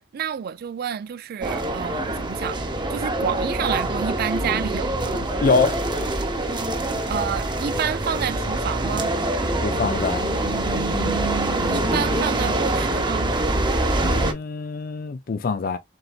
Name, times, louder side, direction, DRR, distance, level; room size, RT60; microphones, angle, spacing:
voice 1, 0.0-2.6 2.9-5.3 7.1-9.1 11.7-13.3, right 8 dB, 55° right, 0.3 m, -29 dB
sound 1, 1.4-14.3, right 1 dB, 25° right, 1.0 m, -24 dB
voice 2, 5.4-5.7 9.6-10.2 10.9-11.2 14.0-15.8, left 4 dB, 50° left, 0.4 m, -24 dB
4.6 x 3.9 x 2.3 m
head